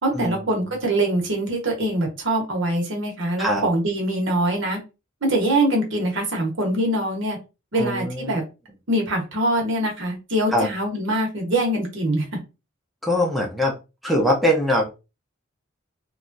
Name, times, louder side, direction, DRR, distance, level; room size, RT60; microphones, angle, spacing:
voice 1, 0.0-4.8 5.2-7.4 7.7-8.4 8.9-12.3, right 1 dB, 65° right, 1 dB, 1.2 m, -23 dB
voice 2, 7.8-8.3 10.5-10.7 13.0-13.7 14.0-14.8, equal, ahead, -2 dB, 0.6 m, -22 dB
3.2 x 2.4 x 2.6 m, 0.27 s
head